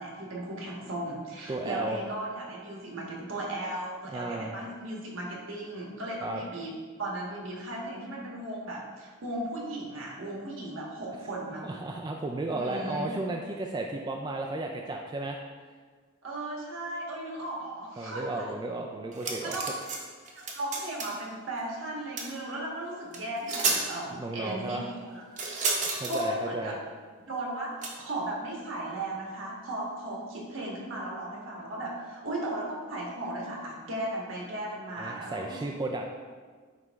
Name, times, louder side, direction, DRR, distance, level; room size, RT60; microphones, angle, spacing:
voice 1, 0.0-6.7 7.0-11.8 12.5-13.1 16.2-18.5 19.4-19.7 20.3-25.2 26.1-26.8 27.2-35.7, right 1 dB, 70° right, -3 dB, 1.4 m, -36 dB
voice 2, 1.5-2.0 4.0-4.5 6.2-6.4 11.6-15.4 18.0-19.6 24.1-24.8 25.9-26.8 35.0-36.1, right 2 dB, 20° right, 1 dB, 0.3 m, -34 dB
sound 1, 19.1-20.0 20.3-21.2 22.2-22.3 23.1-23.2 23.5-23.8 25.4-26.2 27.8-27.9, right 3 dB, 35° right, 0.9 m, -30 dB
8.9 x 3.2 x 3.5 m, 1.5 s
head